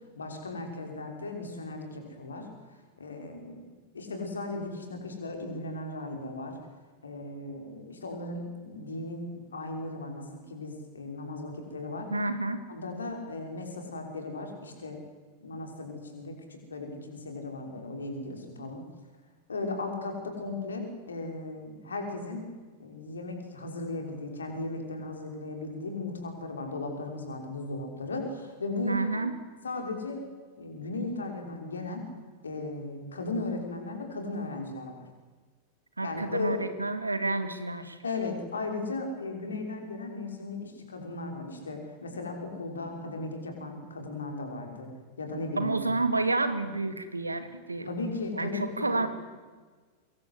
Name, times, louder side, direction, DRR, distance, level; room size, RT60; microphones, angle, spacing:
voice 1, 0.2-6.5 7.0-12.1 12.7-15.0 15.4-18.8 19.5-22.5 22.8-29.3 29.6-30.2 30.6-32.0 32.4-35.0 36.0-36.6 38.0-44.9 45.2-45.8 47.8-49.1, left 2 dB, 70° left, 3 dB, 5.8 m, -36 dB
voice 2, 12.1-12.6 28.9-29.3 36.0-38.0 45.6-47.9 48.4-49.1, right 2 dB, 80° right, 10 dB, 2.2 m, -29 dB
24.5 x 22.5 x 8.2 m, 1.4 s
figure-of-eight pair, 90°, 0 cm